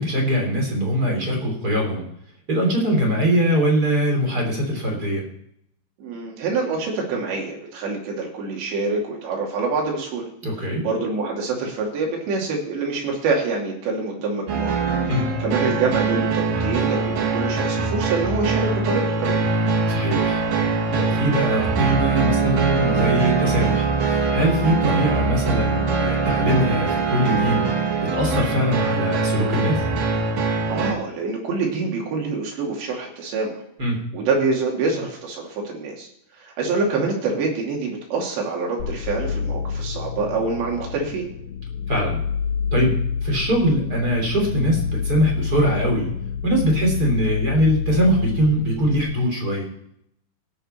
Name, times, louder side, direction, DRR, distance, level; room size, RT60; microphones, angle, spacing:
voice 1, 0.0-2.1 2.5-5.2 10.4-10.8 15.1-15.3 19.9-27.7 28.1-29.9 33.8-34.0 41.9-42.2 42.7-46.1 46.4-49.6, equal, 25° right, 0 dB, 3.0 m, -22 dB
voice 2, 6.0-10.2 10.8-14.7 15.4-19.4 24.8-25.0 30.7-33.6 34.1-36.1 36.4-41.3, right 4 dB, 80° right, -1 dB, 4.8 m, -26 dB
sound 1, 14.5-30.9, right 4 dB, 60° right, 2.8 m, -22 dB
sound 2, 38.8-49.0, left 6 dB, 90° left, 1.7 m, -28 dB
18.0 x 7.1 x 4.4 m, 0.73 s
omnidirectional pair, 5.0 m